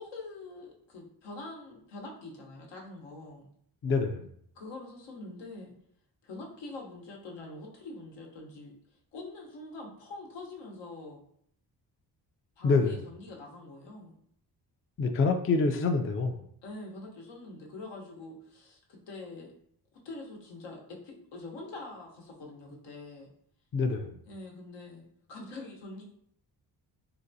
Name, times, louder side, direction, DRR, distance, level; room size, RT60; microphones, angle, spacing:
voice 1, 0.0-3.5 4.5-5.7 6.2-8.7 9.1-11.2 12.6-14.2 16.6-19.5 20.0-23.3 24.3-26.0, left 2 dB, 90° left, -1 dB, 0.9 m, -44 dB
voice 2, 3.8-4.3 12.6-13.0 15.0-16.4 23.7-24.2, left 4 dB, 35° left, 6 dB, 0.4 m, -26 dB
3.9 x 2.3 x 2.6 m, 0.67 s
cardioid pair, 80°, 42 cm